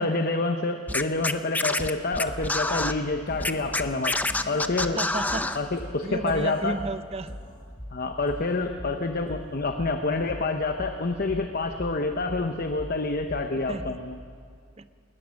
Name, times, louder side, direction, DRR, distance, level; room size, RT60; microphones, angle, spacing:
voice 1, 0.0-4.1 4.5-5.0 5.5-6.8 7.9-14.2, left 3 dB, 50° left, 6 dB, 0.9 m, -27 dB
Scratching (performance technique), 0.9-2.9 3.4-5.6, left 2 dB, 10° left, 0.6 m, -27 dB
sound 1, 2.3-14.3, equal, 25° left, 2.2 m, -42 dB
voice 2, 4.8-5.5 6.0-7.4 13.7-14.0 14.8-14.9, right 2 dB, 30° right, 12 dB, 0.7 m, -33 dB
20.5 x 20.0 x 6.4 m, 2.2 s
head